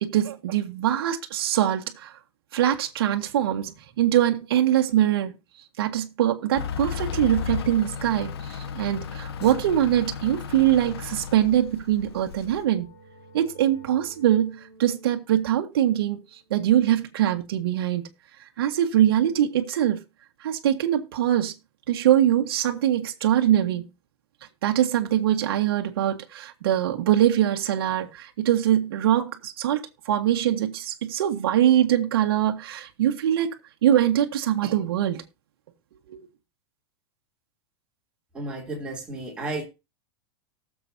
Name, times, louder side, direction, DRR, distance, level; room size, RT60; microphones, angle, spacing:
voice 1, 0.0-2.1 2.5-3.7 4.0-5.3 5.8-12.9 13.3-14.5 14.8-16.2 16.5-18.1 18.6-20.0 20.4-21.5 21.9-23.8 24.6-33.5 33.8-35.2 36.1-36.3, right 11 dB, 65° right, 1.4 m, -23 dB
Truck / Idling, 6.5-12.6, left 7 dB, 75° left, 1.3 m, -34 dB
sound 1, 12.2-17.7, right 1 dB, 30° left, 3.7 m, -53 dB
voice 2, 38.3-39.6, right 2 dB, 5° right, 2.9 m, -32 dB
19.0 x 7.1 x 2.7 m
supercardioid pair, 180°, 13 cm